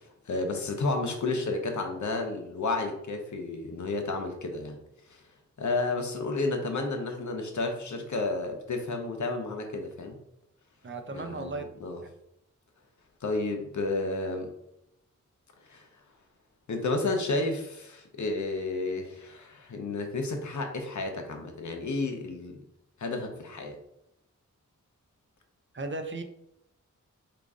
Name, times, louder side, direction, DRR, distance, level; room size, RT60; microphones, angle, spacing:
voice 1, 0.0-4.8 5.1-5.2 5.6-10.2 11.1-12.0 13.2-14.5 15.7-15.8 16.7-22.6 23.0-23.8, left 3 dB, 70° left, 4 dB, 0.7 m, -31 dB
voice 2, 10.8-11.6 12.0-12.1 25.7-26.2, right 3 dB, 40° right, 6 dB, 0.5 m, -35 dB
3.8 x 2.4 x 3.6 m, 0.80 s
cardioid pair, 55°, 31 cm